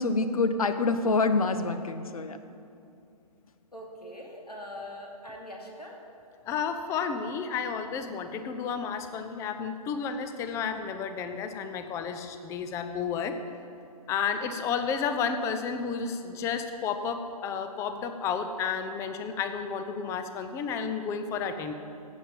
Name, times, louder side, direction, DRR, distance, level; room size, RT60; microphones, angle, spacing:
voice 1, 0.0-2.4, left 3 dB, 65° left, 10 dB, 0.9 m, -26 dB
voice 2, 3.7-6.0, left 1 dB, 90° left, 0 dB, 2.5 m, -42 dB
voice 3, 6.5-13.4 14.1-21.7, left 6 dB, 15° left, 8 dB, 0.6 m, -32 dB
14.5 x 8.6 x 5.3 m, 2.6 s
figure-of-eight pair, 130°, 20 cm